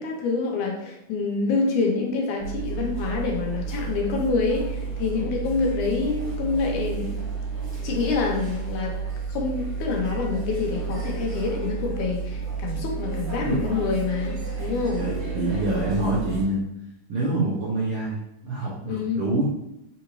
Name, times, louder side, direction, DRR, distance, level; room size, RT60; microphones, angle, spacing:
voice 1, 0.0-7.2 7.8-9.0 9.3-15.1 18.8-19.2, left 4 dB, 75° left, 0 dB, 2.2 m, -27 dB
sound 1, 2.4-16.4, right 5 dB, 40° right, 1.3 m, -31 dB
voice 2, 14.9-16.6 17.1-19.4, right 2 dB, 80° right, -6 dB, 1.2 m, -26 dB
4.5 x 3.7 x 3.1 m, 0.83 s
omnidirectional pair, 3.7 m